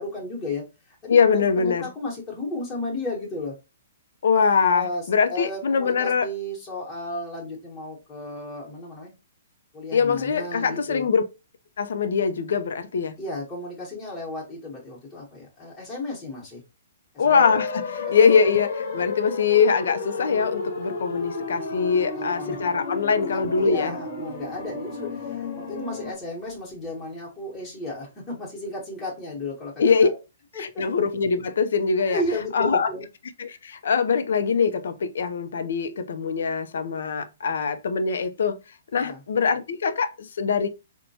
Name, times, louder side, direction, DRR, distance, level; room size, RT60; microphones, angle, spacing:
voice 1, 0.0-3.5 4.7-9.1 9.7-11.1 13.2-16.6 17.1-17.4 22.1-22.6 23.5-29.7 30.0-30.2 30.5-30.8 32.0-33.0 38.9-39.2, left 2 dB, 10° left, 1.1 m, -33 dB
voice 2, 1.1-1.9 4.2-6.3 9.9-11.2 11.8-13.1 17.2-23.9 29.8-30.1 30.6-32.2 32.5-32.9 33.4-38.6 38.9-40.7, left 5 dB, 75° left, 0.5 m, -22 dB
sound 1, 17.3-26.1, left 4 dB, 55° left, 0.9 m, -32 dB
4.3 x 2.2 x 2.7 m
hypercardioid pair, 160°, 0 cm